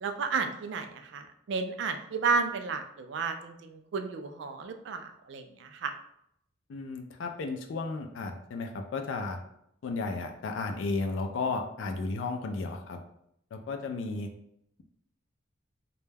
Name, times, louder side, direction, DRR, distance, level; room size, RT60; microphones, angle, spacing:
voice 1, 0.0-5.9, right 4 dB, 60° right, 7 dB, 0.3 m, -32 dB
voice 2, 6.7-9.4 9.8-13.0 13.5-14.3, left 3 dB, 70° left, 4 dB, 0.3 m, -33 dB
2.2 x 2.1 x 3.2 m, 0.74 s
head